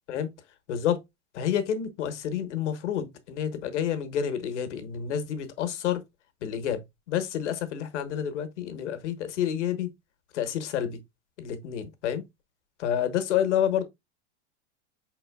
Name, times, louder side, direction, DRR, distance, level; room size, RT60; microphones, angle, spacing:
voice 1, 1.3-6.0 6.4-6.8 7.1-9.9 10.3-11.0 11.4-12.2 12.8-13.8, left 9 dB, 80° left, 1.1 m, -29 dB
5.0 x 3.9 x 2.2 m
hypercardioid pair, 120°, 35 cm